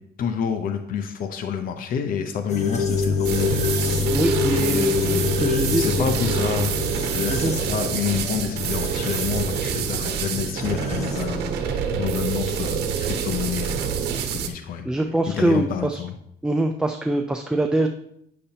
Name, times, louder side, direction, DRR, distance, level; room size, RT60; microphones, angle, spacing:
voice 1, 0.2-4.1 4.5-5.4 5.7-6.8 7.1-13.9 14.3-16.1, left 7 dB, 55° left, 7 dB, 0.7 m, -28 dB
sound 1, 2.5-11.2, left 4 dB, 40° left, 1.2 m, -27 dB
sound 2, 3.2-14.5, right 7 dB, 80° right, 1.1 m, -27 dB
voice 2, 4.1-4.9 5.2-6.0 7.3-7.5 14.8-16.0 16.4-17.9, right 1 dB, 5° right, 4 dB, 0.4 m, -23 dB
8.6 x 6.6 x 2.8 m, 0.73 s
cardioid pair, 110°, 17 cm